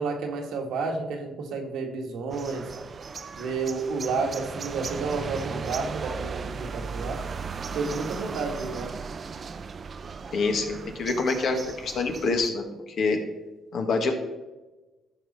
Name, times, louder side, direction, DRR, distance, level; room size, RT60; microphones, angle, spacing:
voice 1, 0.0-2.7 3.4-7.2 7.7-8.9, right 4 dB, 80° right, 2 dB, 1.6 m, -31 dB
sound 1, 2.3-12.5, right 5 dB, 45° right, 0.5 m, -36 dB
voice 2, 10.3-12.6 13.0-13.2 13.7-14.1, left 3 dB, 65° left, 4 dB, 1.7 m, -26 dB
13.5 x 5.5 x 4.2 m, 1.1 s
cardioid pair, 90°, 0 cm